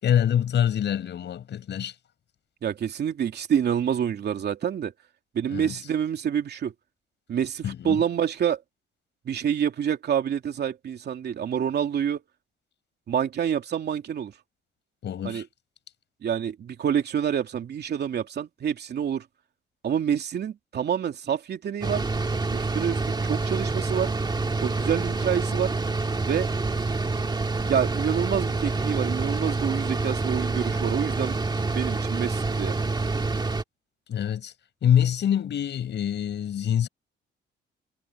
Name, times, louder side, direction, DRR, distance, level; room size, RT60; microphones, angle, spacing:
voice 1, 0.0-1.9 5.5-5.7 7.6-8.0 15.0-15.4 34.1-34.5 34.8-36.9, left 9 dB, 65° left, 6.1 m, -25 dB
voice 2, 2.6-4.9 5.3-6.7 7.3-8.6 9.2-12.2 13.1-14.3 15.2-15.5 16.2-19.2 19.8-22.0 22.5-24.1 24.6-25.7 26.3-26.5 27.7-31.4 31.7-32.7, right 8 dB, 60° right, 2.9 m, -27 dB
sound 1, 21.8-33.6, right 3 dB, 20° right, 1.9 m, -27 dB
cardioid pair, 105°, 19 cm